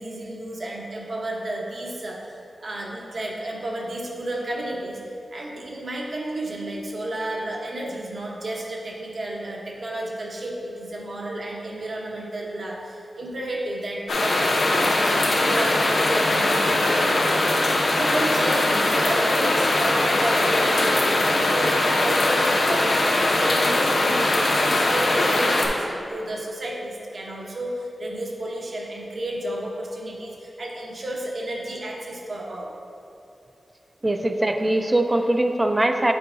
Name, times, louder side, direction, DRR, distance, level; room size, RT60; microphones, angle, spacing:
voice 1, 0.0-2.2 2.6-5.0 5.3-12.8 13.2-32.7, right 1 dB, 50° right, -2 dB, 0.9 m, -31 dB
sound 1, 14.1-25.7, left 2 dB, 75° left, 0.8 m, -21 dB
voice 2, 34.0-36.1, right 1 dB, 20° right, 5 dB, 0.4 m, -21 dB
9.4 x 4.6 x 2.6 m, 2.6 s
wide cardioid pair, 145°, 0 cm